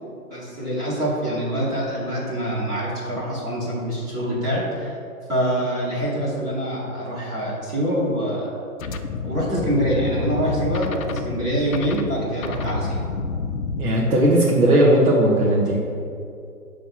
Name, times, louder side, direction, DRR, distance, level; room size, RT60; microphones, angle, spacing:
voice 1, 0.0-5.0 5.3-8.5 9.2-13.0, right 1 dB, 10° right, -8 dB, 0.8 m, -25 dB
sound 1, 8.8-13.9, left 4 dB, 65° left, 0.6 m, -29 dB
voice 2, 13.8-15.8, right 1 dB, 75° right, -6 dB, 1.3 m, -17 dB
6.1 x 3.4 x 5.6 m, 2.5 s
figure-of-eight pair, 140°, 45 cm